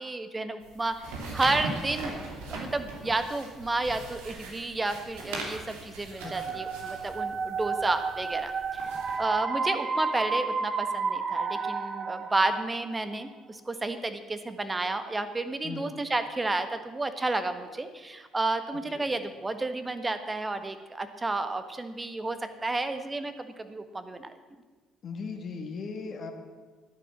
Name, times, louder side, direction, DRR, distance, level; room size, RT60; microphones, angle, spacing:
voice 1, 0.0-2.2 2.5-8.9 9.2-24.3, right 2 dB, 20° right, 9 dB, 1.5 m, -31 dB
sound 1, 0.6-9.2, right 2 dB, 80° right, 2.8 m, -40 dB
voice 2, 6.2-6.6 15.6-16.0 18.7-19.1 25.0-26.3, left 4 dB, 55° left, 4 dB, 2.1 m, -38 dB
sound 2, 6.2-13.0, right 5 dB, 45° right, 1.0 m, -32 dB
12.5 x 10.0 x 7.4 m, 1.4 s
hypercardioid pair, 60°, 0 cm